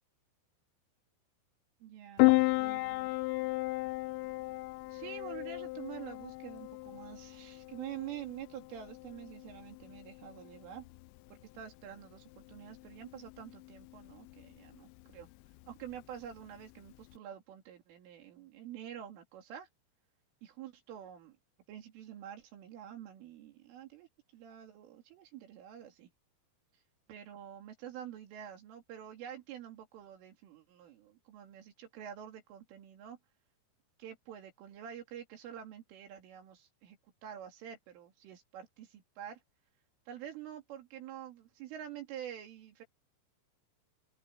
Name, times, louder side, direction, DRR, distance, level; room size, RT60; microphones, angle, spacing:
voice 1, 1.8-3.2 4.9-10.9 11.3-15.3 15.7-19.7 20.4-21.4 21.7-26.1 27.1-33.2 34.0-39.4 40.1-42.9, right 10 dB, 80° right, 5.3 m, -47 dB
Piano, 2.2-17.2, left 24 dB, 90° left, 3.2 m, -35 dB
open air
omnidirectional pair, 5.6 m